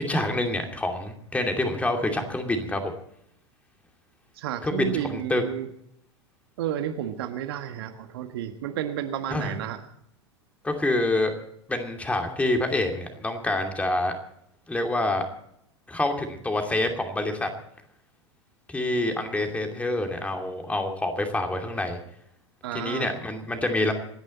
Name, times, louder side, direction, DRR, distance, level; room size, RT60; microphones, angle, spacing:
voice 1, 0.1-2.9 4.6-5.4 9.3-9.5 10.6-11.3 11.7-14.1 14.7-15.3 15.9-17.5 18.7-22.0 22.7-23.9, left 2 dB, 10° left, 4 dB, 2.7 m, -27 dB
voice 2, 4.4-5.7 6.6-9.8 22.6-23.1, right 10 dB, 55° right, 7 dB, 1.5 m, -31 dB
27.0 x 10.5 x 4.2 m, 0.73 s
figure-of-eight pair, 90°, 15 cm